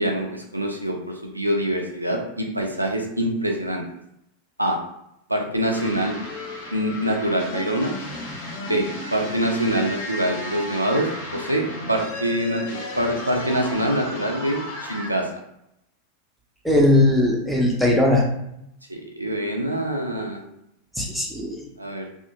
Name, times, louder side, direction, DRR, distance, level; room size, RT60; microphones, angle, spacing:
voice 1, 0.0-3.8 4.6-4.8 5.3-6.1 6.7-7.9 8.7-15.3 18.9-20.4 21.8-22.1, right 1 dB, 85° right, 1 dB, 0.4 m, -25 dB
sound 1, 5.7-15.1, left 1 dB, 55° left, 0.8 m, -34 dB
voice 2, 16.6-18.3 21.0-21.6, left 1 dB, ahead, -4 dB, 0.7 m, -19 dB
2.7 x 2.4 x 2.4 m, 0.79 s
figure-of-eight pair, 90°, 0 cm